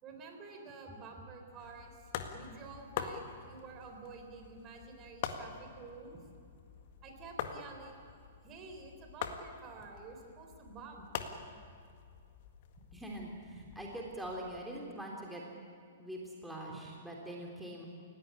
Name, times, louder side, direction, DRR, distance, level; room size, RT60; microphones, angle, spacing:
voice 1, 0.0-6.3 7.0-8.1 8.4-11.1 16.7-16.8, right 4 dB, 25° right, 4 dB, 3.9 m, -50 dB
sound 1, 1.6-14.6, left 8 dB, 45° left, 1.8 m, -45 dB
voice 2, 12.9-15.4 16.0-17.8, right 1 dB, 5° right, -2 dB, 3.3 m, -43 dB
29.5 x 17.0 x 8.6 m, 2.3 s
figure-of-eight pair, 110°, 0 cm